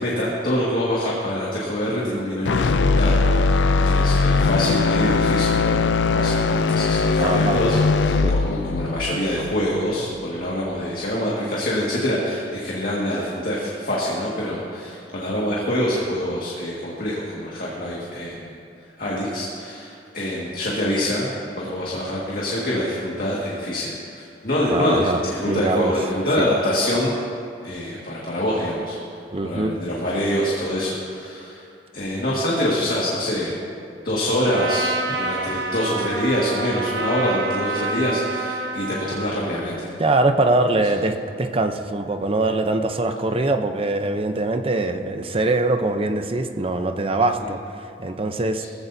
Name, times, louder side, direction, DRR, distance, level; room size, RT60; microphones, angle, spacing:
voice 1, 0.0-18.5 19.0-21.3 21.6-27.1 27.6-29.0 29.4-31.7 31.9-33.6 34.0-39.9 47.4-47.5 48.6-48.7, left 1 dB, 55° left, -6 dB, 1.9 m, -25 dB
sound 1, 2.4-10.6, left 4 dB, 85° left, 0.4 m, -20 dB
voice 2, 7.2-7.6 8.2-8.3 24.7-25.9 26.4-26.5 29.3-29.7 40.0-48.7, right 2 dB, 30° right, 7 dB, 0.7 m, -23 dB
Trumpet, 34.5-39.4, right 3 dB, 75° right, 1.0 m, -28 dB
19.0 x 15.0 x 2.7 m, 2.6 s
head